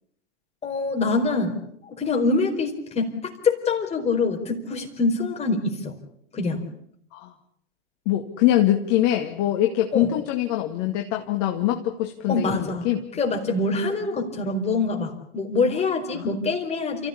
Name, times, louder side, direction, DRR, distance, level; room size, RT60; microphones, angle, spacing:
voice 1, 0.6-1.6 1.8-5.9 6.3-6.6 9.9-10.1 12.3-12.9 13.2-17.1, left 3 dB, 20° left, 2 dB, 4.5 m, -25 dB
voice 2, 8.1-13.0 16.1-16.3, left 13 dB, 40° left, 3 dB, 2.1 m, -23 dB
29.0 x 15.5 x 8.6 m, 0.70 s
hypercardioid pair, 110°, 35 cm